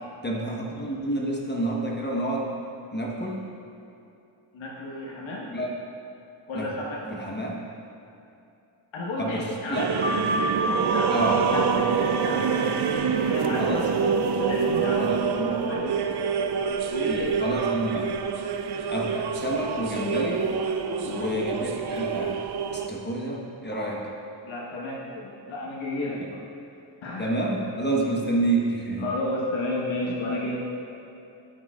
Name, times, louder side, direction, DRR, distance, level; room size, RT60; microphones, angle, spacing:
voice 1, 0.2-2.5 2.9-3.4 5.5-5.7 6.5-6.7 7.0-7.6 9.2-10.3 11.1-11.9 12.3-12.4 13.6-13.9 14.9-15.6 17.1-18.1 18.9-20.5 21.0-22.4 22.7-24.1 27.2-29.1, right 1 dB, 20° left, -2 dB, 1.1 m, -29 dB
voice 2, 4.5-5.5 6.5-7.0 8.9-10.0 10.7-12.6 13.2-13.8 14.4-16.0 16.9-17.7 21.0-21.3 23.7-23.9 24.4-26.4 27.0-27.3 29.0-30.6, left 1 dB, 75° left, -4 dB, 1.3 m, -32 dB
sound 1, 9.7-22.9, right 6 dB, 55° right, 0.6 m, -26 dB
sound 2, 10.0-15.2, right 1 dB, 25° right, 1.2 m, -31 dB
12.0 x 6.4 x 2.4 m, 2.7 s
cardioid pair, 60°, 47 cm